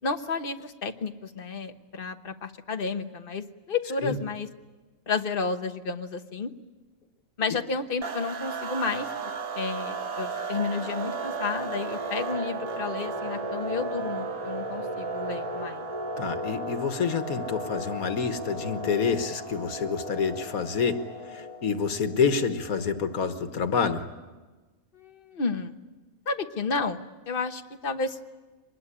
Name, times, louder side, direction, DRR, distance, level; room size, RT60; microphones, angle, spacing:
voice 1, 0.0-4.5 5.1-6.5 7.4-9.1 9.6-15.9 24.9-25.7 26.3-28.2, left 4 dB, 40° left, 7 dB, 1.3 m, -31 dB
sound 1, 8.0-21.4, right 6 dB, 85° right, 1.8 m, -37 dB
sound 2, 8.8-23.2, left 1 dB, 25° right, 2.0 m, -38 dB
voice 2, 16.2-21.0 21.3-24.1, left 5 dB, 90° left, 9 dB, 1.8 m, -27 dB
24.0 x 20.5 x 10.0 m, 1.2 s
omnidirectional pair, 1.5 m